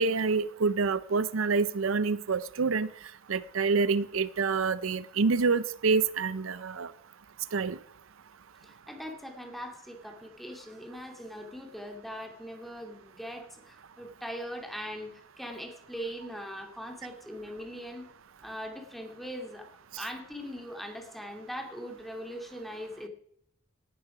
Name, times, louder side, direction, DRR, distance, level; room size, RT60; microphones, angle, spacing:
voice 1, 0.0-2.9 3.3-6.9 7.5-7.8, right 4 dB, 80° right, 16 dB, 0.6 m, -27 dB
voice 2, 8.6-18.1 18.4-19.7 20.0-23.1, equal, ahead, 3 dB, 2.4 m, -41 dB
18.0 x 11.0 x 4.9 m, 0.69 s
head